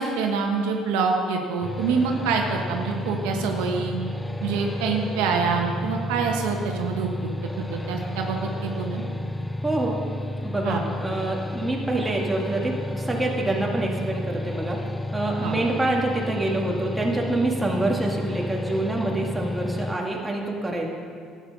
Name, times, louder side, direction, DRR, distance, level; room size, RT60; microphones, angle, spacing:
voice 1, 0.0-3.9 4.4-7.1 7.6-9.0 10.6-10.8 15.4-15.6, right 5 dB, 90° right, 2 dB, 1.2 m, -26 dB
sound 1, 1.6-20.0, left 1 dB, 10° left, 0.4 m, -32 dB
voice 2, 9.6-10.0 10.4-14.8 15.1-20.9, right 2 dB, 10° right, -1 dB, 2.0 m, -26 dB
12.0 x 9.0 x 5.4 m, 2.2 s
supercardioid pair, 90°, 0 cm